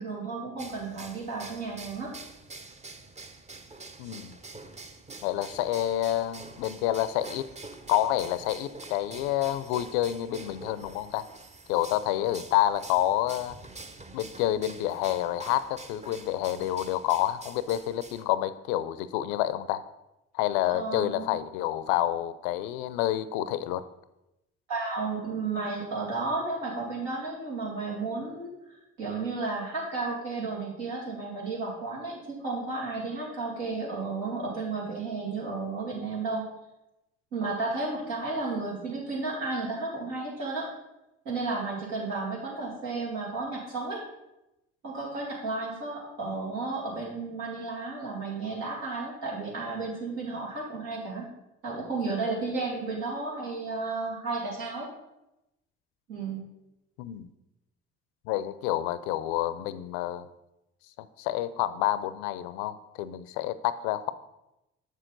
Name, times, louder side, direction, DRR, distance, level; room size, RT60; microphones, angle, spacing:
voice 1, 0.0-2.1 20.6-21.4 24.7-36.4 37.3-40.7 41.2-44.0 44.8-51.2 51.6-54.9 56.1-56.4, right 3 dB, 80° right, -4 dB, 2.6 m, -33 dB
sound 1, 0.6-18.2, right 3 dB, 20° right, 0.7 m, -46 dB
voice 2, 4.0-4.4 5.2-7.4 7.9-11.3 11.7-13.6 14.1-19.8 20.3-23.8 57.0-57.3 58.3-60.3 61.2-64.1, left 13 dB, 85° left, 14 dB, 0.5 m, -28 dB
7.3 x 6.5 x 3.9 m, 0.91 s
hypercardioid pair, 60°, 31 cm